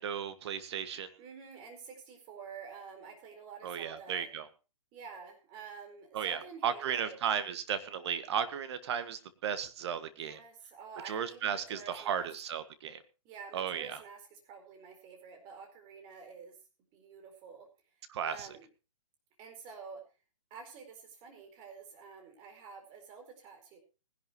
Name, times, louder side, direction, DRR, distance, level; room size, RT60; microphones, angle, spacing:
voice 1, 0.0-1.1 3.6-4.5 6.1-10.4 11.1-13.0 13.5-14.0 18.1-18.5, right 8 dB, 50° right, 11 dB, 1.8 m, -35 dB
voice 2, 1.2-4.3 4.9-7.2 10.2-12.3 13.2-16.6 16.9-18.7 19.4-20.0 20.5-23.8, right 5 dB, 25° right, 4 dB, 4.4 m, -49 dB
20.0 x 11.0 x 3.1 m, 0.31 s
hypercardioid pair, 145°, 18 cm